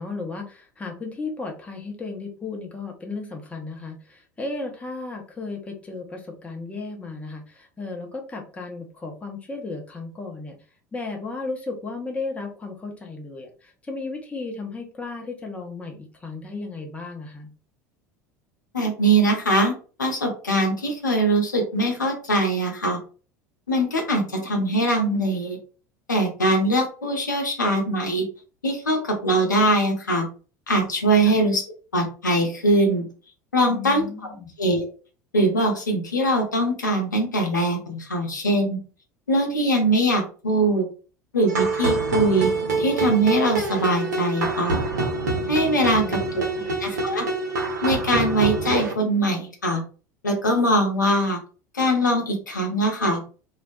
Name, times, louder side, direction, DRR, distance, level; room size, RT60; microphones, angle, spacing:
voice 1, 0.0-10.6 10.9-17.5 31.2-31.4 33.7-34.5 45.9-46.8, left 3 dB, 15° left, 2 dB, 0.6 m, -34 dB
voice 2, 18.7-19.7 20.0-23.0 23.7-25.6 26.1-28.2 28.6-30.2 30.7-31.6 31.9-33.0 33.5-34.0 34.6-34.8 35.3-38.8 39.3-40.8 41.3-42.5 42.8-44.8 45.5-46.0 46.8-47.2 47.8-49.8 50.2-51.4 51.7-53.2, right 1 dB, 80° left, 2 dB, 0.6 m, -22 dB
time night mares lead, 41.5-48.9, right 3 dB, 70° right, 0.6 m, -25 dB
2.3 x 2.1 x 2.6 m, 0.37 s
figure-of-eight pair, 70°, 10 cm